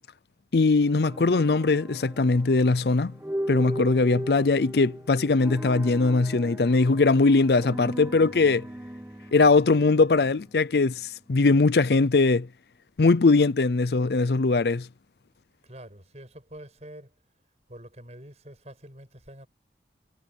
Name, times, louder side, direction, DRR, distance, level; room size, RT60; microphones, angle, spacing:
voice 1, 0.5-3.1 3.5-8.7 9.3-12.5 13.0-14.9, left 3 dB, 65° left, 0.6 m, -21 dB
sound 1, 1.0-11.1, equal, 10° right, 0.6 m, -38 dB
voice 2, 15.6-17.1 17.7-19.5, right 1 dB, 40° right, 7.1 m, -46 dB
head